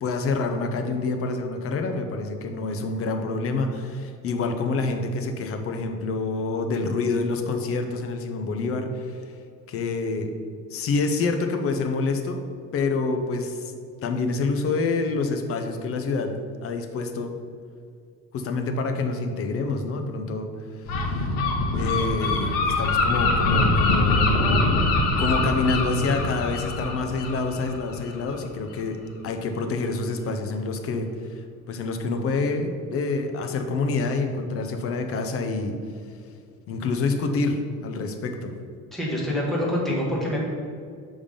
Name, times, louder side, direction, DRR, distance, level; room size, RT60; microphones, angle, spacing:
voice 1, 0.0-9.3 9.7-10.3 10.7-12.4 12.7-13.7 14.0-17.4 18.3-21.3 21.7-24.4 25.2-31.4 31.7-35.8 36.7-38.5, left 3 dB, 40° left, 5 dB, 0.7 m, -27 dB
Gull seagull, 20.9-28.4, left 2 dB, 80° left, 1.2 m, -23 dB
voice 2, 38.9-40.4, left 1 dB, ahead, -5 dB, 1.2 m, -26 dB
6.9 x 3.6 x 5.2 m, 2.2 s
cardioid pair, 140°, 34 cm